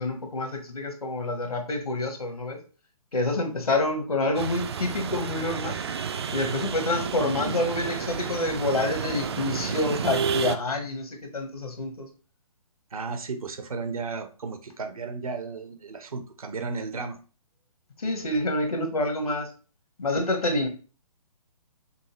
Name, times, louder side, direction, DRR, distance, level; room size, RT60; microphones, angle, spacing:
voice 1, 0.0-2.6 3.1-5.8 6.3-12.1 18.0-19.5 20.0-20.7, left 2 dB, 75° left, 5 dB, 1.2 m, -27 dB
sound 1, 4.3-10.6, right 6 dB, 45° right, 0.4 m, -30 dB
voice 2, 12.9-17.2 18.0-18.3, right 4 dB, 70° right, 8 dB, 0.8 m, -34 dB
5.5 x 2.6 x 3.0 m, 0.35 s
figure-of-eight pair, 130°, 19 cm